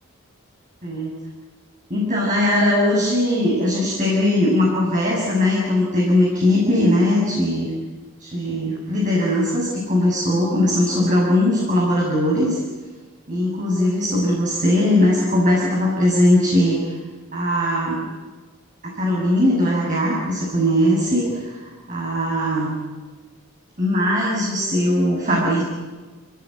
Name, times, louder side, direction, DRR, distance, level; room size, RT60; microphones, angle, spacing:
voice 1, 0.8-1.1 1.9-7.7 8.2-12.6 13.3-17.0 17.3-18.1 18.8-22.7 23.8-25.6, left 1 dB, 35° right, -4 dB, 6.8 m, -20 dB
28.5 x 18.5 x 9.6 m, 1.3 s
head